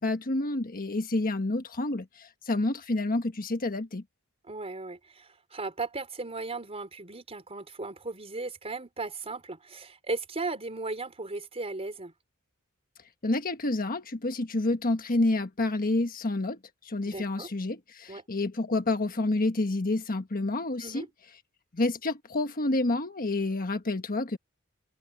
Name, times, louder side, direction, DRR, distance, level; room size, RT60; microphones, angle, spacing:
voice 1, 0.0-4.0 13.2-21.1 21.7-24.4, left 2 dB, 40° left, 1.4 m, -29 dB
voice 2, 4.4-12.1 17.1-17.5 18.1-18.2 20.8-21.1, right 3 dB, 30° right, 4.2 m, -36 dB
open air
head